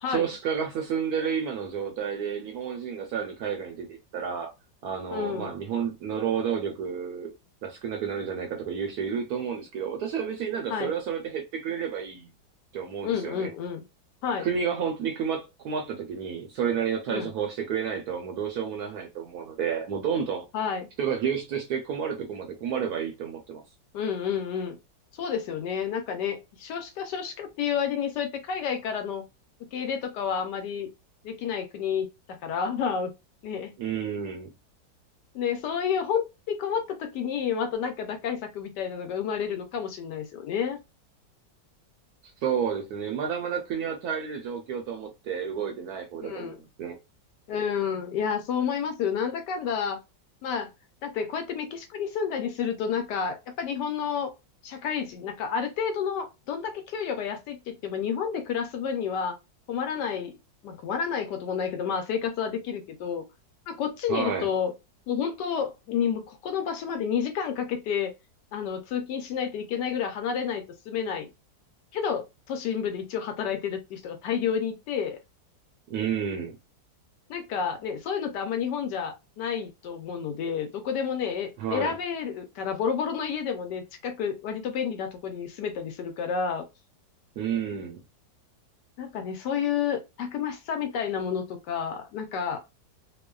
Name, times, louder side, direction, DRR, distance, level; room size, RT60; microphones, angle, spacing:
voice 1, 0.1-4.5 4.8-7.3 7.6-12.3 12.7-13.5 14.4-20.5 21.0-23.6 33.8-34.5 42.4-47.0 64.1-64.5 75.9-76.6 81.6-81.9 87.4-88.0, right 7 dB, 70° right, 0.9 m, -30 dB
voice 2, 5.1-5.5 10.7-10.9 13.0-13.8 14.2-14.5 17.1-17.3 20.5-20.9 23.9-24.8 25.2-29.2 29.7-30.9 31.2-33.1 33.4-33.7 35.3-40.8 46.2-46.6 47.5-50.0 50.4-50.7 51.0-54.3 54.6-59.4 59.7-60.4 60.6-63.2 63.7-64.7 65.1-68.1 68.5-71.3 71.9-75.2 77.3-86.6 89.0-92.6, left 7 dB, 75° left, 1.1 m, -30 dB
2.9 x 2.1 x 2.2 m
omnidirectional pair, 2.0 m